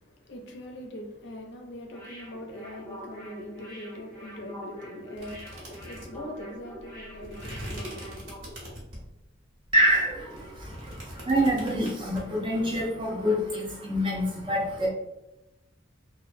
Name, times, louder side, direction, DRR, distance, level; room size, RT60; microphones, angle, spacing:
voice 1, 0.0-8.7, left 1 dB, 55° left, 0.5 m, -42 dB
sound 1, 1.9-8.5 8.8-8.9, equal, 15° left, 0.7 m, -44 dB
sound 2, 5.2-9.2 9.6-12.2, equal, 70° right, 1.1 m, -42 dB
voice 2, 9.7-14.9, equal, 25° right, 0.5 m, -26 dB
2.9 x 2.1 x 2.5 m
head